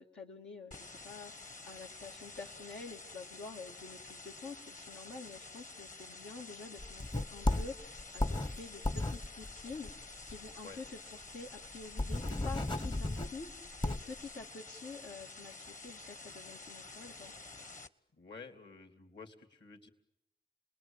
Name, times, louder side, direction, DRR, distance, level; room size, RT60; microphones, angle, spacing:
voice 1, 0.0-10.9 11.1-13.5 13.8-17.3, left 4 dB, 85° left, -4 dB, 2.2 m, -48 dB
sound 1, 0.7-17.9, left 3 dB, 45° left, 1.4 m, -50 dB
sound 2, 6.8-10.5 10.8-10.9 11.2-11.3 11.7-14.2, left 2 dB, 25° left, 0.9 m, -34 dB
voice 2, 18.1-19.9, left 4 dB, 65° left, 8 dB, 3.1 m, -51 dB
28.0 x 20.5 x 8.9 m, 0.84 s
cardioid pair, 40°, 19 cm